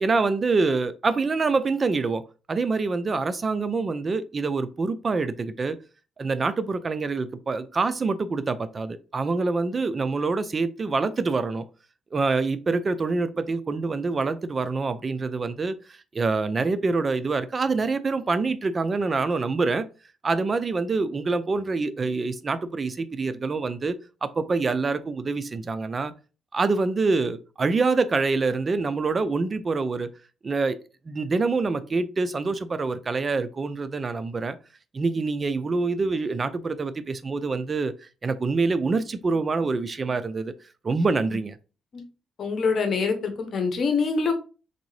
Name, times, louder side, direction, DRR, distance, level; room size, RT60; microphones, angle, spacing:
voice 1, 0.0-2.2 2.5-5.8 6.2-11.7 12.1-19.9 20.2-24.0 24.2-26.1 26.5-30.1 30.4-30.8 31.1-34.6 34.9-37.9 38.2-40.5 40.8-41.6, right 3 dB, 35° right, 0.4 m, -26 dB
voice 2, 42.4-44.3, left 5 dB, 55° left, 1.0 m, -24 dB
3.9 x 3.5 x 3.2 m
cardioid pair, 90°, 0 cm